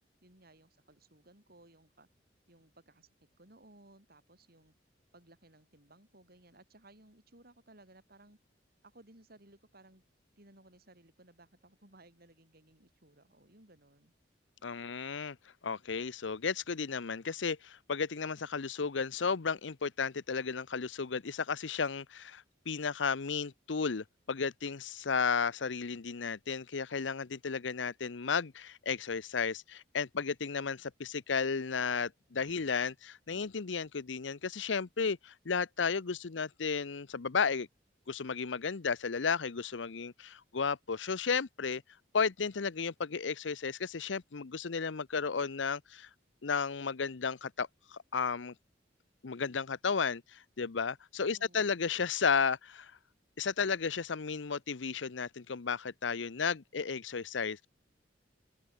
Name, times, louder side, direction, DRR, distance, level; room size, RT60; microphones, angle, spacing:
voice 1, 0.2-2.1 2.5-3.1 3.4-4.7 5.1-8.4 8.8-10.0 10.4-14.1 51.2-51.7, right 2 dB, 55° right, 7.1 m, -60 dB
voice 2, 14.6-15.4 15.6-37.7 38.1-41.8 42.1-46.1 46.4-48.5 49.2-52.9 53.4-57.7, left 5 dB, 85° left, 0.7 m, -33 dB
head